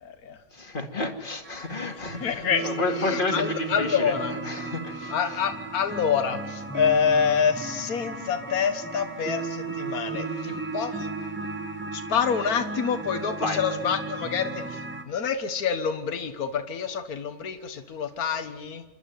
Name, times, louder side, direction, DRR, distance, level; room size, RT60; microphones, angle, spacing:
voice 1, 0.0-0.4 1.8-2.7 3.0-4.3 5.1-11.1 11.9-14.8 15.1-18.8, left 7 dB, 70° left, 7 dB, 1.8 m, -27 dB
voice 2, 0.5-5.4 10.2-10.6 13.4-13.6, left 3 dB, 35° left, 4 dB, 2.5 m, -31 dB
sound 1, 1.4-15.0, right 3 dB, 5° right, 1.6 m, -35 dB
28.5 x 12.0 x 9.4 m, 1.2 s
omnidirectional pair, 1.6 m